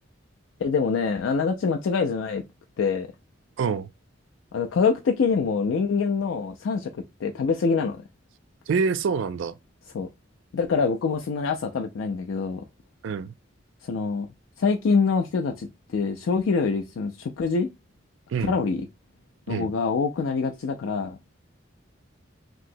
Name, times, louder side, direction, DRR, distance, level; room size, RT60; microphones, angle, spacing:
voice 1, 0.6-2.4 2.8-3.1 4.5-8.0 9.9-10.1 10.5-12.7 13.8-14.3 14.6-17.7 18.4-18.9 19.5-21.2, left 5 dB, 85° left, 0.4 m, -25 dB
voice 2, 3.6-3.9 8.7-9.6 13.0-13.3 18.3-18.5 19.5-19.7, right 5 dB, 75° right, 0.3 m, -26 dB
3.0 x 2.8 x 2.6 m
head